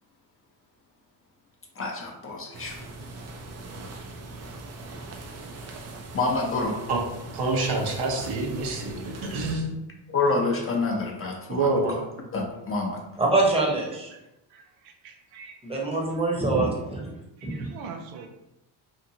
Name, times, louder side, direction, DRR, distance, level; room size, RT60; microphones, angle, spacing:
voice 1, 1.8-2.8 6.1-6.8 10.1-12.0 12.3-13.0, left 3 dB, 30° left, 0 dB, 0.6 m, -27 dB
sound 1, 2.5-9.5, right 2 dB, 35° right, 0.5 m, -41 dB
voice 2, 7.3-9.7 11.5-11.9, right 3 dB, 55° right, 0 dB, 0.9 m, -27 dB
voice 3, 13.2-14.1 15.6-17.1 17.4-17.7, right 2 dB, 10° right, -2 dB, 0.9 m, -24 dB
voice 4, 14.5-15.6 16.1-16.2 17.4-18.3, right 5 dB, 85° right, 3 dB, 0.6 m, -43 dB
2.8 x 2.5 x 2.7 m, 0.92 s
supercardioid pair, 80°, 46 cm